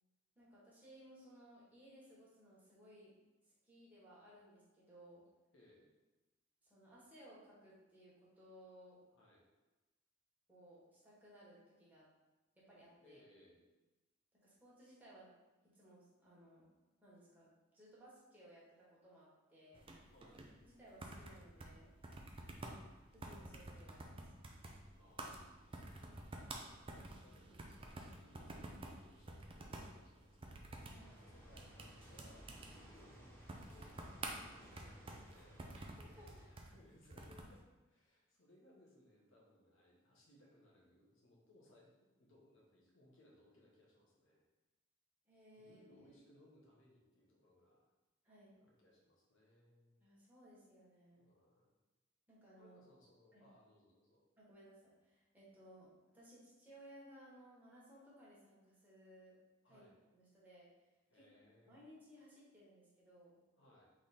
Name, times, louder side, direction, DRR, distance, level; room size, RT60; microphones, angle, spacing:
voice 1, 0.3-3.2 3.4-5.2 6.6-9.0 10.5-12.0 12.6-13.2 14.3-15.3 15.6-16.7 17.0-20.1 20.6-21.9 23.1-24.3 31.0-31.2 36.0-36.5 45.3-46.1 48.2-48.5 50.0-51.2 52.3-52.8 53.3-53.5 54.4-55.9 56.1-59.4 59.7-59.9 60.1-60.7 61.1-61.3 61.7-63.4, equal, 10° right, -8 dB, 1.3 m, -61 dB
voice 2, 5.5-5.9 9.1-9.4 13.0-13.6 20.1-20.5 25.0-26.1 26.4-30.8 31.2-35.8 36.5-44.4 45.6-47.8 48.6-50.0 51.2-51.7 52.6-54.3 59.6-59.9 61.1-61.8 63.6-63.9, left 1 dB, 70° left, -3 dB, 1.2 m, -67 dB
sound 1, 19.7-37.6, right 2 dB, 25° right, 0.5 m, -51 dB
sound 2, 30.8-36.5, equal, 10° left, 1.1 m, -60 dB
3.6 x 3.2 x 4.2 m, 1.1 s
head